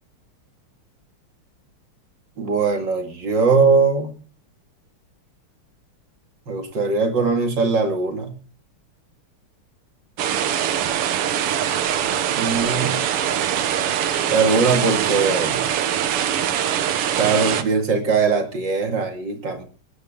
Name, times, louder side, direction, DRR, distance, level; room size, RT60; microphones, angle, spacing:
voice 1, 2.4-4.1 6.5-8.3 12.4-13.0 14.3-15.7 17.2-19.6, right 4 dB, 55° right, 4 dB, 2.8 m, -20 dB
sound 1, 10.2-17.6, right 9 dB, 90° right, 2.0 m, -23 dB
20.0 x 9.4 x 3.7 m, 0.40 s
omnidirectional pair, 2.4 m